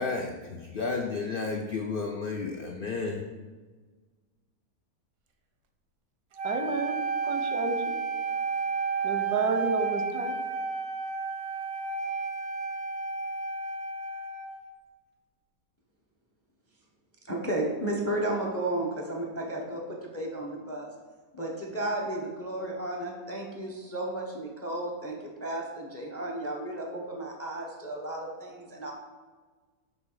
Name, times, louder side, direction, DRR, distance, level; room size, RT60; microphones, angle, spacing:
voice 1, 0.0-3.3, left 4 dB, 70° left, 2 dB, 0.5 m, -32 dB
Wind instrument woodwind instrument, 6.4-14.6, right 4 dB, 60° right, 0.7 m, -31 dB
voice 2, 6.4-7.0 7.2-7.8 9.0-10.4, right 4 dB, 90° right, 7 dB, 1.2 m, -30 dB
voice 3, 17.2-20.9 21.3-28.9, right 1 dB, 15° left, 0 dB, 0.5 m, -33 dB
7.1 x 3.3 x 4.7 m, 1.4 s
omnidirectional pair, 1.6 m